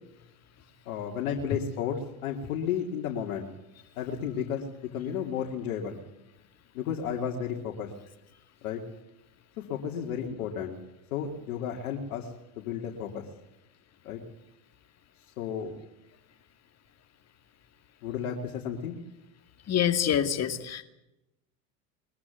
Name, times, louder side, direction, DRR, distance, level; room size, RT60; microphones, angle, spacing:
voice 1, 0.9-3.5 4.0-6.0 6.7-7.9 8.6-8.8 9.6-10.8 11.1-12.3 12.6-13.2 14.0-14.2 15.4-15.7 18.0-19.0, left 8 dB, 75° left, 0 dB, 2.9 m, -33 dB
voice 2, 19.7-20.8, left 9 dB, 35° left, 9 dB, 2.5 m, -26 dB
22.5 x 14.5 x 9.4 m, 0.91 s
hypercardioid pair, 90°, 43 cm